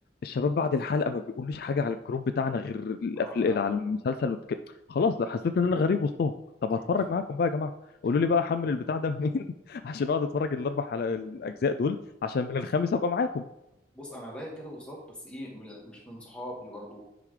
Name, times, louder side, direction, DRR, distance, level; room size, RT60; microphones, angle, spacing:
voice 1, 0.2-4.6 4.9-6.3 6.6-7.7 8.0-12.0 12.2-13.5, left 4 dB, 55° left, 9 dB, 0.3 m, -28 dB
voice 2, 3.1-3.6 6.8-6.9 13.9-17.0, equal, 5° left, -4 dB, 1.9 m, -41 dB
10.0 x 5.1 x 3.3 m, 0.87 s
head